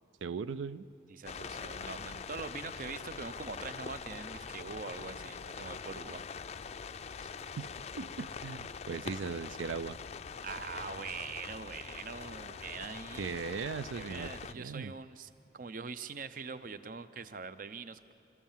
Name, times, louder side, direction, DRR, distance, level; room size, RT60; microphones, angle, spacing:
voice 1, 0.2-0.9 7.2-7.3 7.6-7.7 8.0-10.0 13.2-14.9, right 5 dB, 85° right, 15 dB, 0.4 m, -38 dB
voice 2, 1.1-6.2 10.4-13.3 14.0-18.1, right 5 dB, 45° right, 13 dB, 0.6 m, -43 dB
sound 1, 1.3-14.5, left 5 dB, 35° left, 0.4 m, -44 dB
28.0 x 13.0 x 7.4 m, 2.6 s
head